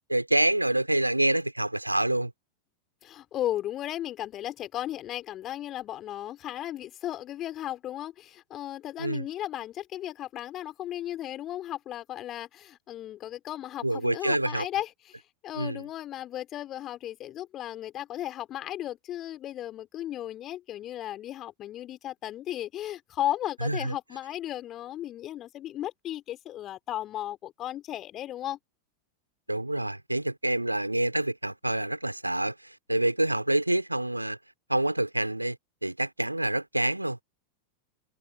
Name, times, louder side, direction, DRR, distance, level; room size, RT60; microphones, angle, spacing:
voice 1, 0.1-2.3 9.0-9.2 13.8-14.7 15.6-15.8 23.6-23.9 29.5-34.4 34.7-35.6 35.8-37.2, right 1 dB, 85° right, 3.3 m, -27 dB
voice 2, 3.0-28.6, left 12 dB, 30° left, 3.1 m, -35 dB
figure-of-eight pair, 90°, 0 cm